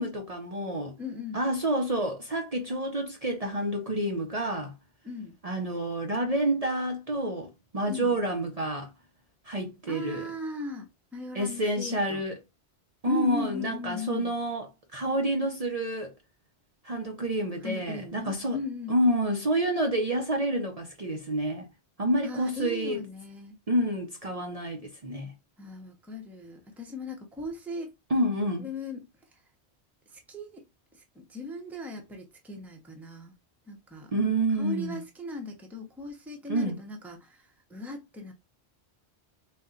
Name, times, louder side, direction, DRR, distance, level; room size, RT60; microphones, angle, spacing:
voice 1, 0.0-0.9 1.3-4.7 5.4-8.9 9.5-10.3 11.3-12.3 13.0-16.1 16.8-18.6 18.9-21.6 22.0-23.0 23.7-25.3 28.1-28.7 34.1-35.0 36.5-36.8, right 1 dB, 40° right, 0.7 m, -28 dB
voice 2, 1.0-1.4 5.0-5.3 7.9-8.2 9.9-12.2 13.1-14.3 17.6-18.9 22.2-23.5 25.6-27.9 28.6-29.1 30.1-30.6 30.9-33.3 33.7-34.1 34.6-38.3, left 2 dB, ahead, 0.7 m, -38 dB
4.1 x 2.3 x 3.7 m
omnidirectional pair, 1.1 m